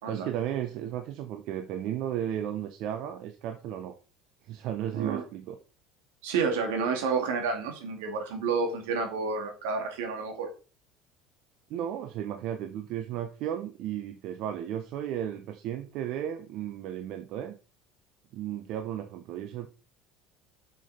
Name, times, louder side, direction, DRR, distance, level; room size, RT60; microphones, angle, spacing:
voice 1, 0.1-4.0 4.4-5.6 11.7-17.5 18.3-19.7, right 10 dB, 65° right, 7 dB, 0.9 m, -34 dB
voice 2, 6.2-10.5, right 5 dB, 80° right, 3 dB, 2.5 m, -30 dB
6.5 x 6.4 x 4.3 m, 0.34 s
hypercardioid pair, 80°, 0 cm